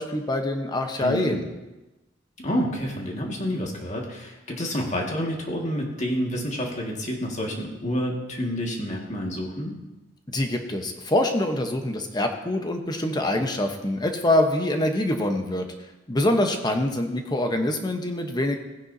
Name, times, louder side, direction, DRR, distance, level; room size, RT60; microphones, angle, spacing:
voice 1, 0.0-1.5 10.3-15.7 16.1-18.6, left 1 dB, 20° left, 5 dB, 1.0 m, -25 dB
voice 2, 1.0-1.4 2.4-9.7, equal, 40° left, -1 dB, 1.9 m, -29 dB
16.0 x 9.9 x 2.8 m, 1.1 s
head